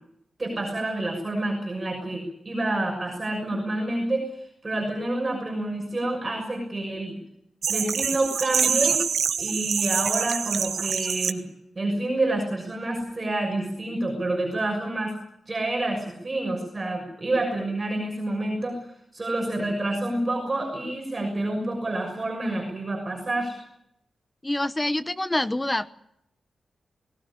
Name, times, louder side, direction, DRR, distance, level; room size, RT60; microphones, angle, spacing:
voice 1, 0.4-7.2 7.7-9.0 9.4-11.4 11.7-15.1 15.5-18.8 19.1-23.6, right 2 dB, 20° right, 0 dB, 6.4 m, -28 dB
sound 1, 7.6-11.3, right 7 dB, 80° right, 1.2 m, -25 dB
voice 2, 24.4-25.9, left 1 dB, 15° left, 13 dB, 1.0 m, -26 dB
21.0 x 19.0 x 10.0 m, 0.77 s
wide cardioid pair, 155°, 0 cm